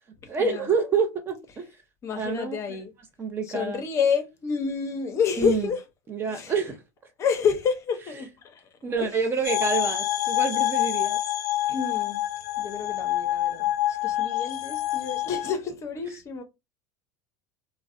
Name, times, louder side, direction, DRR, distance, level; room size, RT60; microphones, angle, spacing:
voice 1, 0.3-1.7 2.1-2.8 3.2-3.8 5.4-5.6 6.1-6.8 8.8-11.2, right 5 dB, 25° right, 0.5 m, -27 dB
voice 2, 2.0-2.9 3.4-5.8 6.3-6.5 7.2-8.6 9.0-9.2 11.7-12.2 12.6-16.4, left 6 dB, 35° left, 0.6 m, -29 dB
sound 1, 9.4-15.5, left 13 dB, 90° left, 0.4 m, -27 dB
2.4 x 2.0 x 2.4 m
supercardioid pair, 115°, 9 cm